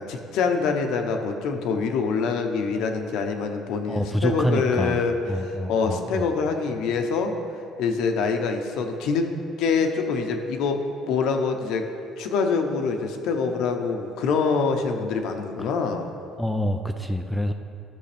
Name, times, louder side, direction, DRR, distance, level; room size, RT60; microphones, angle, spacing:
voice 1, 0.0-7.3 7.8-9.3 9.6-11.8 12.2-16.1, left 5 dB, 70° left, 4 dB, 0.8 m, -25 dB
voice 2, 3.9-5.0 5.2-6.3 15.6-15.7 16.4-17.5, equal, ahead, 5 dB, 0.4 m, -26 dB
13.0 x 6.3 x 3.4 m, 2.5 s
cardioid pair, 145°, 0 cm